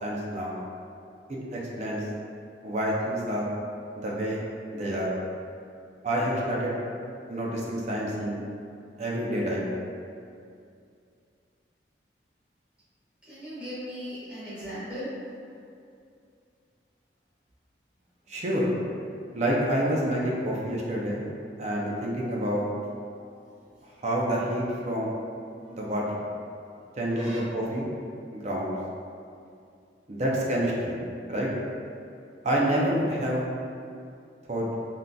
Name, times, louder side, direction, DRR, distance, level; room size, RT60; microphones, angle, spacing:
voice 1, 0.0-0.6 1.3-2.1 2.6-3.5 4.0-4.4 4.7-5.1 6.0-6.7 7.3-8.4 9.0-9.7 18.3-18.7 19.3-21.3 21.6-22.7 24.0-25.1 25.7-26.2 27.0-27.9 28.3-28.7 30.1-30.9 31.3-31.5 32.4-33.4 34.5-34.7, right 1 dB, 40° right, -4 dB, 0.5 m, -28 dB
voice 2, 13.3-15.1 23.2-23.3 25.6-25.8 27.1-27.4, equal, 5° right, -14 dB, 1.3 m, -38 dB
3.6 x 2.5 x 2.3 m, 2.4 s
head